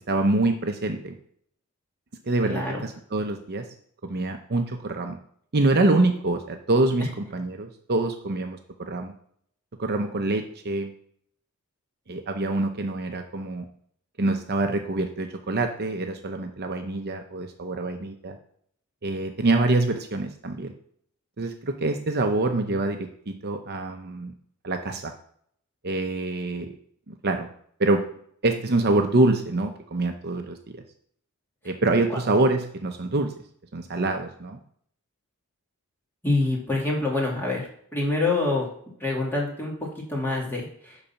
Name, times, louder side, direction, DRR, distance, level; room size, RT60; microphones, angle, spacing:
voice 1, 0.1-1.2 2.3-3.7 4.0-5.2 5.5-9.1 9.8-10.9 12.1-13.7 14.2-18.4 19.0-20.7 21.4-24.3 24.6-25.1 25.8-26.8 27.1-27.5 27.8-28.1 28.4-30.8 31.6-33.3 33.7-34.6, right 2 dB, 50° right, 5 dB, 0.7 m, -25 dB
voice 2, 2.5-2.8 32.1-32.2 36.2-37.7 37.9-38.7 39.0-39.7 40.1-40.9, left 2 dB, 10° left, -3 dB, 2.6 m, -26 dB
10.5 x 4.1 x 5.8 m, 0.64 s
head